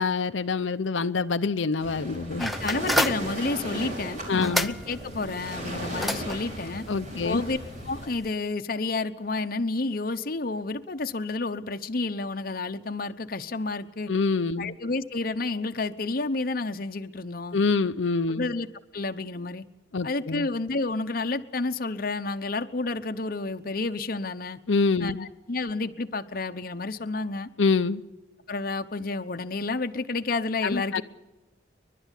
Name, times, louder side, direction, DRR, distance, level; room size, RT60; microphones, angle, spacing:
voice 1, 0.0-2.4 4.3-4.7 6.9-7.4 14.1-14.7 17.5-18.5 19.9-20.5 24.7-25.3 27.6-28.0 30.6-31.0, left 4 dB, 85° left, 0.7 m, -26 dB
Waves surf, 1.8-8.1, right 1 dB, 40° right, 5.2 m, -36 dB
voice 2, 2.4-6.9 7.2-7.6 7.8-14.1 14.6-17.6 18.3-18.7 18.9-19.6 20.0-24.6 25.0-27.5 28.5-31.0, left 3 dB, 50° left, 0.9 m, -30 dB
sound 1, 2.4-8.3, equal, ahead, 0.7 m, -32 dB
30.0 x 12.0 x 8.3 m
head